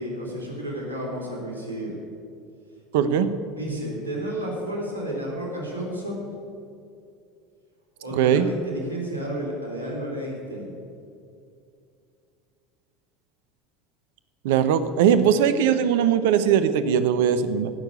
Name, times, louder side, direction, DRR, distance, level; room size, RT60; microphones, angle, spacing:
voice 1, 0.0-2.0 3.6-6.3 8.0-10.8, right 1 dB, 90° right, -1 dB, 3.5 m, -31 dB
voice 2, 2.9-3.3 8.1-8.5 14.4-17.7, right 8 dB, 70° right, 12 dB, 0.9 m, -20 dB
16.0 x 6.8 x 8.7 m, 2.5 s
hypercardioid pair, 75°, 0 cm